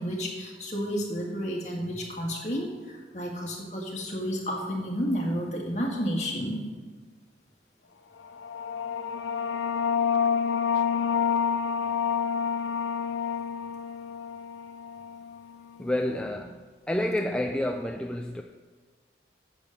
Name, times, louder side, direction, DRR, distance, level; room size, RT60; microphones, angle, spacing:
voice 1, 0.0-6.6, equal, 40° left, -1 dB, 1.9 m, -31 dB
sound 1, 8.2-15.5, left 7 dB, 90° left, 0.5 m, -28 dB
voice 2, 15.8-18.4, left 1 dB, 5° left, 3 dB, 0.3 m, -29 dB
8.6 x 7.2 x 6.5 m, 1.4 s
head